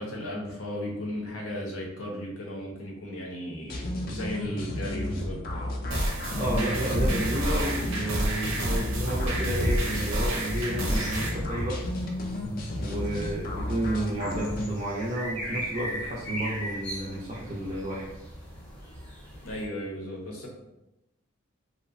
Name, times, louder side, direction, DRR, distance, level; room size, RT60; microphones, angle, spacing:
voice 1, 0.0-5.7 19.4-20.5, left 1 dB, 85° left, -2 dB, 0.7 m, -36 dB
sound 1, 3.7-14.7, left 1 dB, 45° left, 0.3 m, -32 dB
sound 2, 5.9-11.3, right 1 dB, 70° right, 0.6 m, -29 dB
voice 2, 6.3-11.8 12.8-18.1, right 1 dB, 30° right, -5 dB, 0.4 m, -31 dB
sound 3, 10.8-19.7, equal, 5° left, 0.6 m, -40 dB
2.7 x 2.0 x 2.5 m, 0.91 s
head